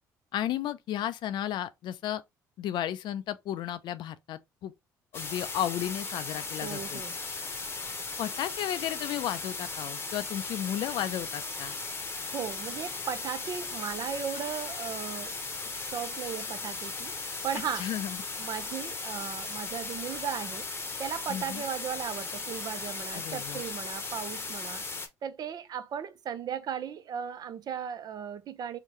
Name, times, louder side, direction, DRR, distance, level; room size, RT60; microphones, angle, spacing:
voice 1, 0.3-2.2 2.6-4.7 5.1-7.0 8.2-11.8 17.5-18.2 21.3-21.6 23.1-23.6, left 11 dB, 60° left, 0.4 m, -33 dB
sound 1, 5.1-25.1, left 3 dB, 25° left, 0.8 m, -37 dB
voice 2, 6.6-7.1 12.2-15.4 15.6-17.1 17.4-17.9 18.4-20.7 21.0-24.8 25.2-28.8, right 8 dB, 50° right, 0.5 m, -36 dB
3.8 x 2.1 x 3.0 m
hypercardioid pair, 65°, 9 cm